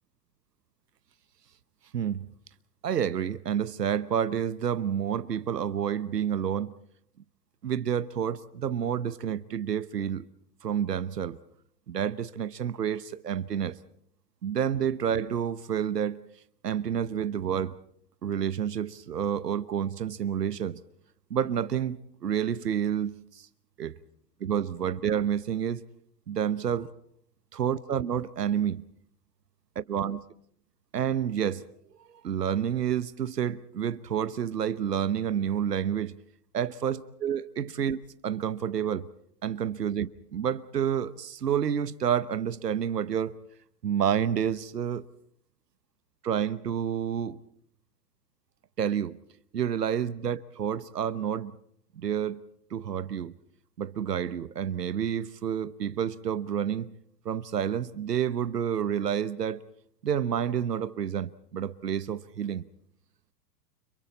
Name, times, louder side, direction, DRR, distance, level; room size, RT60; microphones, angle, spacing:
voice 1, 1.9-2.2 2.8-6.7 7.6-10.3 10.6-11.4 11.9-13.8 14.4-16.2 16.6-17.8 18.2-20.8 21.3-23.5 23.8-24.0 24.4-25.8 26.3-26.9 27.5-28.8 29.9-30.2 30.9-31.6 32.2-36.2 36.5-38.0 38.2-39.1 39.4-43.4 43.8-45.0 46.2-47.4 48.8-49.2 49.5-51.6 52.0-52.4 52.7-53.3 53.8-57.0 57.2-59.6 60.0-62.6, right 8 dB, 75° right, 1.1 m, -29 dB
30.0 x 26.5 x 4.1 m
figure-of-eight pair, 100°, 49 cm